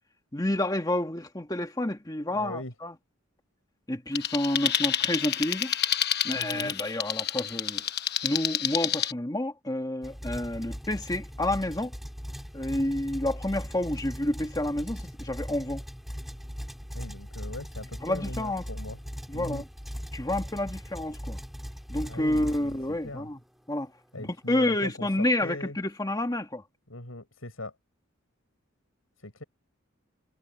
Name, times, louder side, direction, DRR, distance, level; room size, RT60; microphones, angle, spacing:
voice 1, 0.3-2.9 3.9-5.7 6.2-7.8 8.2-11.9 12.5-15.8 18.0-18.6 19.3-19.6 20.1-21.4 21.9-23.4 23.7-23.9 24.2-26.6, left 1 dB, 20° left, 1.9 m, -29 dB
voice 2, 2.3-2.7 6.3-6.8 16.9-19.0 19.3-19.7 22.0-23.3 24.1-25.8 26.9-27.7 29.2-29.4, left 1 dB, 85° left, 7.1 m, -40 dB
sound 1, 4.1-9.1, left 10 dB, 50° left, 1.0 m, -29 dB
sound 2, 10.0-23.2, equal, ahead, 3.5 m, -39 dB
head